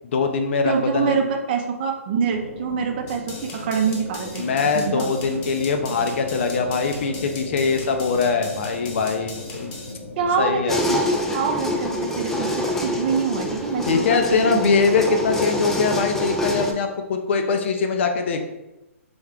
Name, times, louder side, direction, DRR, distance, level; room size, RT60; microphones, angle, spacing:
voice 1, 0.0-1.2 4.4-9.7 10.4-10.8 13.8-18.4, left 5 dB, 50° left, 5 dB, 0.6 m, -22 dB
voice 2, 0.6-5.1 10.2-15.2, right 6 dB, 40° right, 3 dB, 0.6 m, -25 dB
sound 1, 2.3-10.6, left 2 dB, 70° left, 0.9 m, -37 dB
sound 2, 3.1-9.9, left 3 dB, 35° left, 0.9 m, -40 dB
sound 3, 10.7-16.7, left 1 dB, 5° left, 0.3 m, -26 dB
3.5 x 3.5 x 3.3 m, 0.98 s
hypercardioid pair, 140°, 8 cm